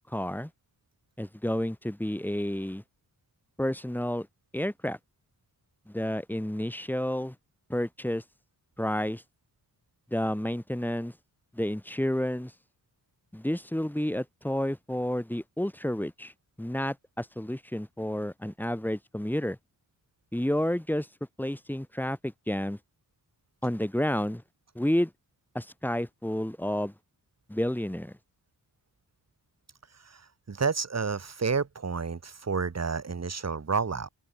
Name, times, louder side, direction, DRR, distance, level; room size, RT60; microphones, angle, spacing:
voice 1, 0.1-0.5 1.2-2.8 3.6-4.3 4.5-5.0 5.9-7.4 7.7-8.2 8.8-9.2 10.1-11.1 11.5-12.5 13.3-16.3 16.6-19.6 20.3-21.1 21.4-22.8 23.6-24.4 24.8-25.1 25.6-26.9 27.5-28.1, left 1 dB, 5° left, 1.9 m, -30 dB
voice 2, 30.0-34.1, right 5 dB, 40° right, 2.0 m, -30 dB
open air
cardioid pair, 50°, 40 cm